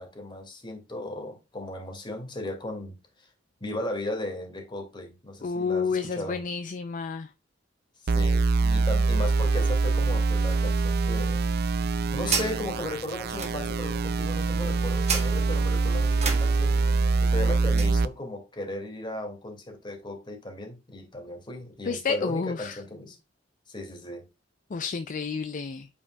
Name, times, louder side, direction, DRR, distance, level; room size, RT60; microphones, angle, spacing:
voice 1, 0.0-3.3 3.6-6.4 8.0-11.4 12.1-16.8 17.2-23.2 23.7-24.2, left 1 dB, 25° left, 2.1 m, -36 dB
voice 2, 5.4-7.3 21.9-22.8 24.7-25.9, left 5 dB, 45° left, 0.4 m, -30 dB
sound 1, 8.1-18.1, right 3 dB, 55° right, 0.4 m, -24 dB
sound 2, 11.7-18.0, right 5 dB, 35° right, 1.5 m, -36 dB
8.5 x 5.3 x 2.3 m
head